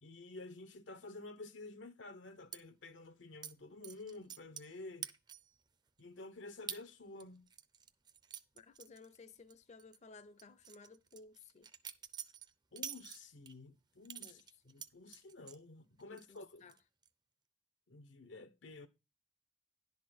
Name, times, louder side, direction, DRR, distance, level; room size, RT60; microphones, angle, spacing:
voice 1, 0.0-5.1 6.0-7.5 12.7-14.4 14.7-16.7 17.9-18.9, left 2 dB, 90° left, 1.1 m, -51 dB
sound 1, 2.5-2.6 3.4-3.5 3.8-4.7 5.0-5.6 6.0-6.1 6.7-6.8 7.2-9.5 9.8-10.0 10.4-13.5 14.1-15.6 16.0-16.4 16.7-17.1, right 8 dB, 25° right, 0.5 m, -47 dB
voice 2, 8.5-11.7 14.2-14.7 16.1-16.8, left 4 dB, 40° left, 0.6 m, -58 dB
11.0 x 4.1 x 6.7 m
head